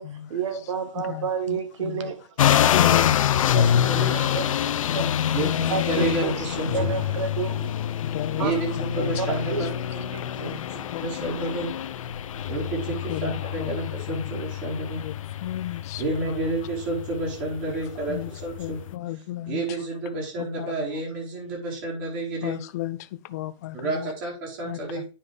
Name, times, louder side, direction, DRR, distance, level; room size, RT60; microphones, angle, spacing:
voice 1, 0.0-2.7 3.5-4.5 4.9-5.1 5.7-6.3 6.7-7.7 8.4-8.5 9.0-9.7 10.1-10.5, right 6 dB, 65° right, 1.4 m, -31 dB
voice 2, 1.0-2.1 2.7-4.5 4.9-5.5 6.5-6.8 8.0-8.5 8.7-9.1 9.4-9.5 10.2-11.0 13.1-13.7 14.1-14.3 15.0-15.1 15.4-16.3 18.1-18.3 18.6-19.6 20.4-20.7 22.4-23.0 23.3-24.1 24.7-25.0, left 14 dB, 30° left, 0.4 m, -34 dB
sound 1, 2.4-18.9, left 10 dB, 85° left, 0.5 m, -26 dB
voice 3, 3.4-4.4 5.3-6.7 8.4-9.7 9.9-10.1 10.3-10.6 11.0-11.7 12.5-15.0 16.0-18.8 19.1-22.6 23.7-25.1, right 2 dB, 35° right, 4.3 m, -30 dB
9.8 x 5.5 x 3.4 m
hypercardioid pair, 165°, 17 cm